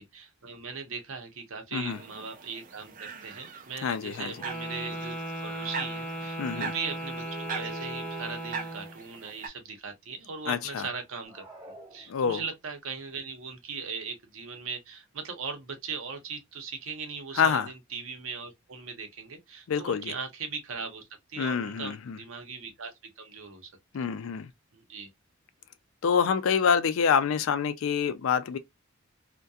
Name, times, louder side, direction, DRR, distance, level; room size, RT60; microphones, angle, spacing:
voice 1, 0.0-21.0 21.3-23.7 24.0-24.1 24.7-25.1, right 5 dB, 70° right, 0.7 m, -39 dB
sound 1, 1.9-9.5, right 4 dB, 40° right, 0.4 m, -41 dB
voice 2, 3.8-4.3 6.4-6.7 10.5-10.9 12.1-12.4 17.3-17.7 19.7-20.2 21.4-22.2 23.9-24.5 26.0-28.6, left 6 dB, 75° left, 0.4 m, -26 dB
Wind instrument woodwind instrument, 4.4-9.0, right 1 dB, 5° left, 0.6 m, -37 dB
sound 2, 11.1-12.7, right 1 dB, 20° right, 1.3 m, -50 dB
2.3 x 2.2 x 2.6 m
head